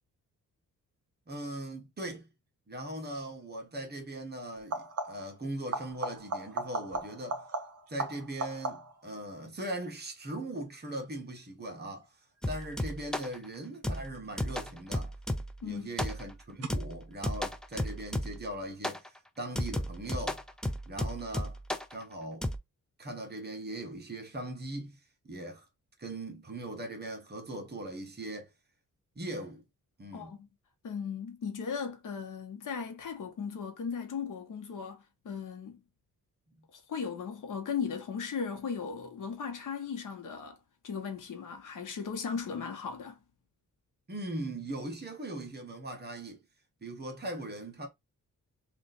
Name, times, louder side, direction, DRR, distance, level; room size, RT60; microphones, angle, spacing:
voice 1, 1.3-2.3 2.7-7.4 7.9-12.1 12.5-15.1 15.6-20.4 20.9-21.6 21.9-22.5 23.0-25.0 25.2-25.6 26.0-28.5 29.1-29.6 30.0-30.4 36.5-36.7 44.1-46.4 46.8-47.9, right 1 dB, 30° right, 1.2 m, -40 dB
sound 1, 3.1-3.4 4.6-5.4 5.7-9.1 14.5-15.1 16.6-16.7, right 2 dB, 50° right, 0.9 m, -37 dB
sound 2, 12.4-13.4 13.8-15.6 16.0-16.4 16.7-18.5 18.8-19.1 19.6-21.9 22.4-22.6, left 1 dB, ahead, 0.3 m, -34 dB
voice 2, 15.6-15.9 30.1-30.5 30.8-35.8 36.7-40.6 40.8-43.2, left 6 dB, 75° left, 1.1 m, -37 dB
3.1 x 2.5 x 4.0 m
wide cardioid pair, 125°, 32 cm